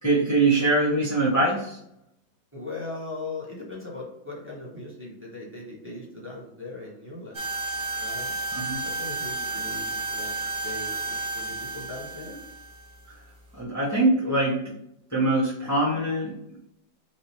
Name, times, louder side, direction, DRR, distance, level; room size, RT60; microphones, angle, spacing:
voice 1, 0.0-1.8 8.5-8.8 13.1-13.2 13.5-14.7 15.1-16.6, right 2 dB, 15° left, -7 dB, 0.6 m, -23 dB
voice 2, 2.5-7.5 7.9-8.4 8.8-12.4, left 2 dB, 10° right, -4 dB, 1.1 m, -39 dB
sound 1, 7.3-13.6, right 3 dB, 40° right, 0.6 m, -32 dB
4.3 x 2.6 x 4.5 m, 0.79 s
omnidirectional pair, 2.0 m